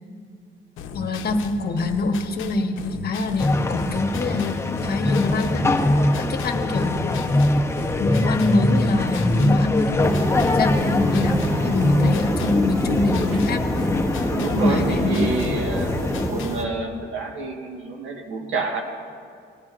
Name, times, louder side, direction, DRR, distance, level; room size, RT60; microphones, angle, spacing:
sound 1, 0.8-16.7, left 7 dB, 80° left, 0.7 m, -37 dB
voice 1, 0.9-5.7 6.2-7.2 8.0-10.2 10.5-13.6 14.5-15.3, left 2 dB, 55° left, 5 dB, 1.1 m, -24 dB
sound 2, 3.4-16.3, left 1 dB, 15° left, 0.8 m, -23 dB
sound 3, 10.0-16.6, right 1 dB, 15° right, 1.0 m, -29 dB
voice 2, 14.3-18.8, right 3 dB, 85° right, 1 dB, 1.5 m, -28 dB
19.5 x 10.5 x 2.5 m, 2.2 s
cardioid pair, 90°, 20 cm